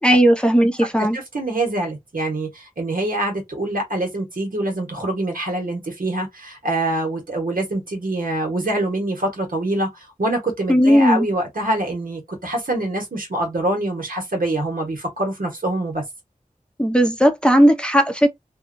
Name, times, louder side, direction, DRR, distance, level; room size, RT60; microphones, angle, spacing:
voice 1, 0.0-1.2 10.7-11.3 16.8-18.3, equal, 5° left, 0.6 m, -16 dB
voice 2, 1.1-16.0, right 1 dB, 90° right, 1.2 m, -25 dB
2.7 x 2.3 x 2.6 m
wide cardioid pair, 45°, 14 cm